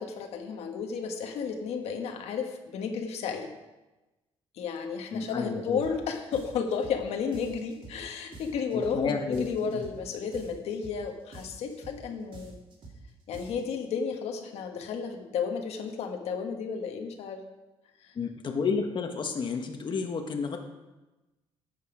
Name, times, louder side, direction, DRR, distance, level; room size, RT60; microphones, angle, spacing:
voice 1, 0.0-3.5 4.5-12.6 13.3-17.4 18.0-18.1, left 6 dB, 90° left, 3 dB, 1.4 m, -33 dB
voice 2, 5.1-5.8 8.7-9.8 18.1-20.6, left 5 dB, 50° left, 4 dB, 1.3 m, -31 dB
sound 1, 5.8-6.0 6.3-7.0 7.3-8.0 8.3-9.0 9.3-10.0 10.3-11.0 11.3-12.0 12.3-13.0 13.3-13.8, right 3 dB, 55° right, 3.0 m, -47 dB
12.0 x 8.1 x 5.0 m, 1.1 s
cardioid pair, 110°, 10 cm